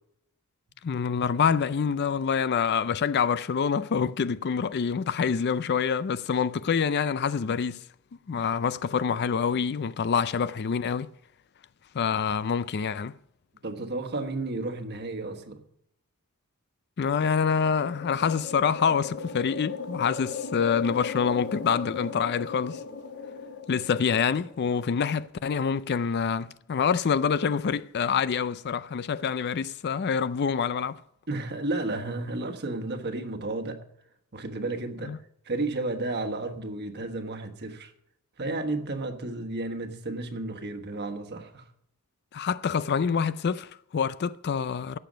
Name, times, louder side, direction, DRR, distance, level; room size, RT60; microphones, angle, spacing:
voice 1, 0.8-7.8 8.3-11.1 11.9-13.1 17.0-22.8 23.7-31.0 35.0-35.2 42.3-45.0, left 6 dB, 50° left, 0.4 m, -26 dB
voice 2, 13.6-15.6 31.3-33.8 34.3-35.1 35.4-37.9 38.4-41.7, right 2 dB, 50° right, 1.3 m, -32 dB
sound 1, 17.2-24.8, left 5 dB, 75° left, 2.1 m, -38 dB
16.5 x 6.8 x 5.2 m
head